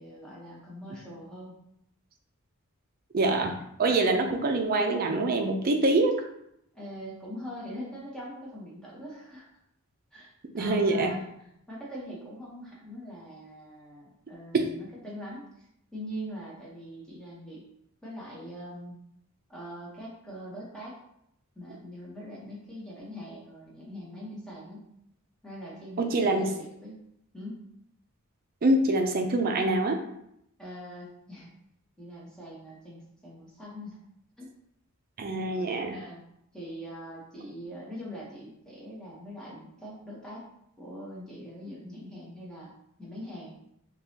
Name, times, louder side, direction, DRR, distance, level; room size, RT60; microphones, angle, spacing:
voice 1, 0.0-1.5 6.7-9.4 10.1-11.2 11.7-15.7 15.9-17.6 18.0-19.0 19.5-21.0 21.5-24.9 25.4-27.0 27.3-27.7 30.6-31.5 32.0-34.0 34.4-34.5 35.9-36.2 36.5-40.4 40.8-42.7 43.0-43.5, equal, 5° left, -6 dB, 1.0 m, -42 dB
voice 2, 3.1-6.2 10.5-11.2 14.5-14.7 26.0-26.5 28.6-30.0 35.2-36.0, right 2 dB, 45° right, 4 dB, 0.5 m, -25 dB
3.8 x 2.9 x 2.8 m, 0.76 s
head